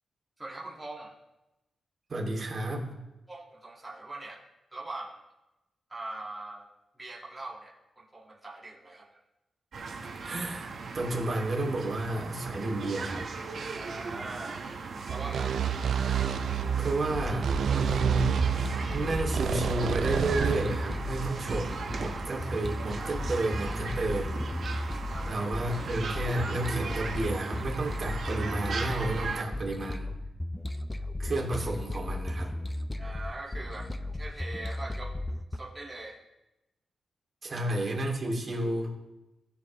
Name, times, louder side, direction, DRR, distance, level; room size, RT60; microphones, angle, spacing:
voice 1, 0.4-1.1 3.3-4.5 4.7-5.3 5.9-6.7 7.0-9.2 13.8-14.6 15.1-15.7 25.1-25.4 33.0-33.9 34.2-35.1 35.5-36.2 37.5-37.6, right 2 dB, 15° right, -5 dB, 1.8 m, -42 dB
voice 2, 2.1-3.0 10.2-13.3 16.8-18.4 18.9-24.4 25.2-30.1 31.2-32.5 37.4-38.9, right 2 dB, 45° right, -2 dB, 2.4 m, -31 dB
sound 1, 9.7-29.4, right 4 dB, 65° right, 1.2 m, -38 dB
sound 2, 15.1-20.6, right 8 dB, 85° right, 0.4 m, -29 dB
sound 3, 17.1-35.6, left 1 dB, 15° left, 0.6 m, -35 dB
15.5 x 7.0 x 3.1 m, 0.98 s
cardioid pair, 95°, 0 cm